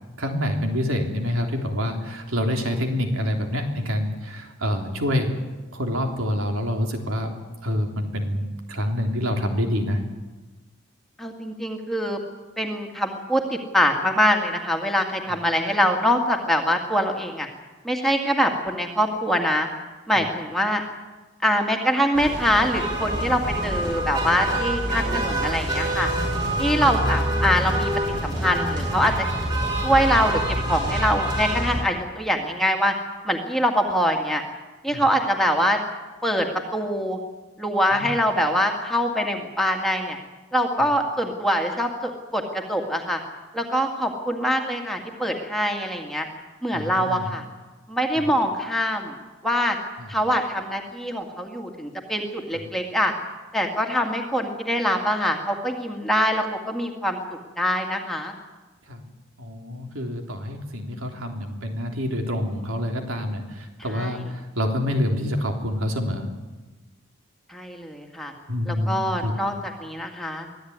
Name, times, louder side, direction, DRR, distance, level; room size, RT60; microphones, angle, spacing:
voice 1, 0.2-5.4 5.7-7.3 7.6-10.0 15.3-15.4 20.1-20.2 26.5-26.6 34.9-35.0 37.9-38.1 40.8-40.9 46.7-47.3 48.2-48.3 50.0-50.2 52.5-52.6 58.9-59.0 59.4-66.3 68.5-69.3, left 1 dB, 85° right, 3 dB, 3.5 m, -27 dB
voice 2, 11.2-12.2 12.6-17.5 17.8-19.7 20.1-20.8 21.4-26.1 26.6-27.9 28.2-29.1 29.8-30.4 30.7-32.9 33.3-34.4 34.8-35.8 36.2-37.2 37.6-40.2 40.5-43.2 43.5-46.3 46.6-47.4 47.9-49.1 49.4-49.8 50.1-53.1 53.5-57.2 57.6-58.3 63.9-64.1 67.5-68.3 68.7-69.5 69.8-70.5, equal, ahead, 1 dB, 2.1 m, -24 dB
sound 1, 22.1-31.8, right 1 dB, 25° right, 7.6 m, -26 dB
25.0 x 16.5 x 9.6 m, 1.2 s
head